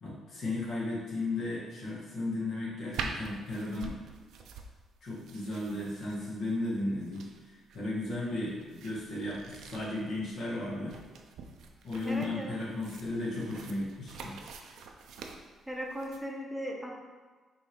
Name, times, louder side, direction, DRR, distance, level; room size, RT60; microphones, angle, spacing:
voice 1, 0.0-4.0 5.0-10.9 11.8-14.4, left 2 dB, 65° left, -6 dB, 1.5 m, -35 dB
sound 1, 2.9-16.2, right 5 dB, 80° right, 0.4 m, -45 dB
voice 2, 12.1-12.6 15.7-16.9, equal, ahead, -1 dB, 0.8 m, -37 dB
5.4 x 2.8 x 3.0 m, 1.4 s
cardioid pair, 90°, 0 cm